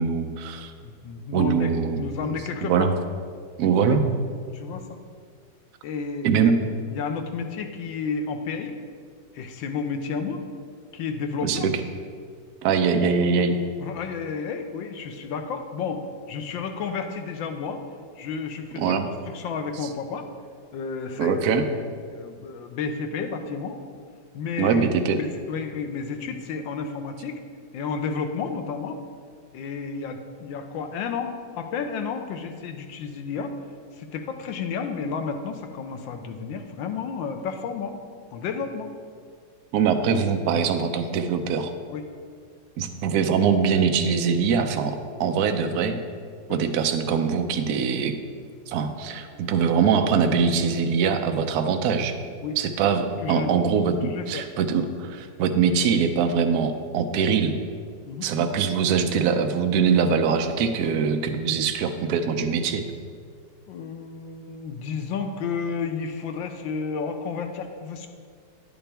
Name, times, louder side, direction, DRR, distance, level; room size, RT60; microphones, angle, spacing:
voice 1, 0.0-0.7 1.3-2.0 2.6-2.9 3.6-4.0 6.2-6.5 11.4-11.7 12.6-13.6 18.8-19.1 21.2-21.6 24.6-25.2 39.7-41.7 42.8-46.0 46.5-48.2 48.7-52.1 52.6-57.5 58.2-62.8, right 6 dB, 65° right, 6 dB, 1.0 m, -23 dB
voice 2, 0.8-2.9 3.9-4.0 4.5-5.0 5.8-6.5 6.9-8.8 9.3-10.4 10.9-11.6 13.8-17.8 18.2-19.0 19.2-20.3 20.7-21.6 22.1-23.8 24.3-27.4 27.7-29.0 29.5-33.5 33.9-38.0 38.3-38.9 41.9-42.0 46.5-46.6 52.4-52.6 53.2-53.5 54.0-54.4 58.1-58.3 63.7-68.1, left 5 dB, 75° left, 6 dB, 1.4 m, -31 dB
10.0 x 8.8 x 3.4 m, 2.1 s
omnidirectional pair, 2.2 m